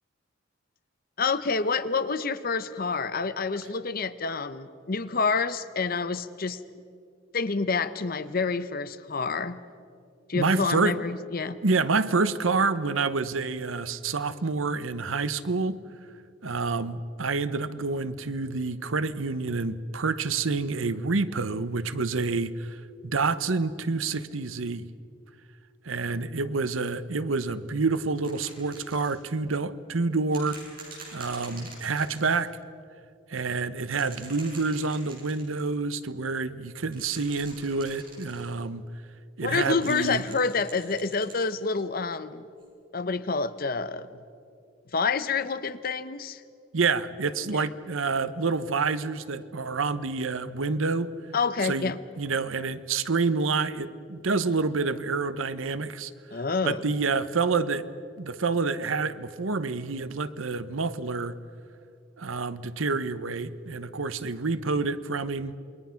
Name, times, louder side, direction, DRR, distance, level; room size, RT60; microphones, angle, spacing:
voice 1, 1.2-6.6 7.3-9.6 10.3-11.6 39.4-42.4 42.9-44.2 44.9-46.4 47.5-47.7 51.3-52.0 56.3-56.8, left 4 dB, 45° left, 13 dB, 0.8 m, -28 dB
voice 2, 10.3-11.0 11.6-15.8 16.4-24.8 25.8-30.6 31.1-32.5 33.3-38.8 39.4-40.2 46.7-51.1 51.6-51.9 52.2-56.1 56.6-57.8 58.2-61.4 62.2-65.5, right 4 dB, 90° right, 14 dB, 0.9 m, -28 dB
sound 1, 28.2-29.2 30.3-32.4 33.8-35.5 36.8-38.5 39.6-41.5 42.6-42.7, right 4 dB, 45° right, 7.7 m, -46 dB
28.0 x 22.0 x 5.8 m, 2.5 s
head